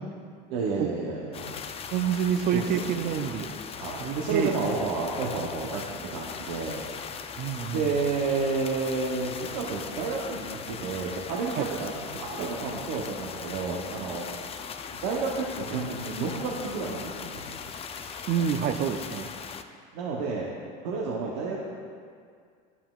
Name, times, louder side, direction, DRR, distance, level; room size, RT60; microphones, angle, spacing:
voice 1, 0.5-1.6 2.5-3.1 3.8-5.8 6.1-6.8 7.7-14.3 14.9-17.6 19.9-20.5 20.8-21.6, right 4 dB, 90° right, -4 dB, 0.9 m, -30 dB
sound 1, 1.3-19.6, left 6 dB, 30° left, 0.4 m, -39 dB
voice 2, 1.9-3.5 4.0-4.5 7.4-7.9 11.6-11.7 18.3-19.3, right 8 dB, 45° right, 8 dB, 0.5 m, -27 dB
11.0 x 5.6 x 2.4 m, 2.2 s
supercardioid pair, 105°, 21 cm